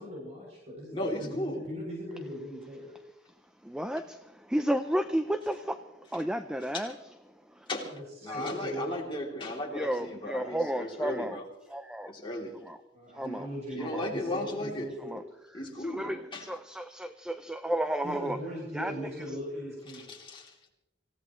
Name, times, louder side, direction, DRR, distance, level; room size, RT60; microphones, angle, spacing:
voice 1, 0.0-2.9 7.8-8.9 12.9-15.2 18.0-20.1, equal, 35° right, -4 dB, 7.8 m, -39 dB
voice 2, 0.9-1.6 6.7-6.9 7.7-7.9 8.2-11.4 12.2-12.5 13.7-14.9 15.5-16.5 19.9-20.5, left 1 dB, 25° left, -1 dB, 3.2 m, -35 dB
voice 3, 3.6-5.8 6.1-6.9 7.5-7.7 8.3-8.4 9.7-11.4 11.7-12.1 12.6-12.8 13.1-13.5 13.9-14.1 15.1-15.2 15.8-18.4 18.7-18.9, equal, 5° right, 9 dB, 0.5 m, -32 dB
26.0 x 17.0 x 3.2 m, 0.93 s
head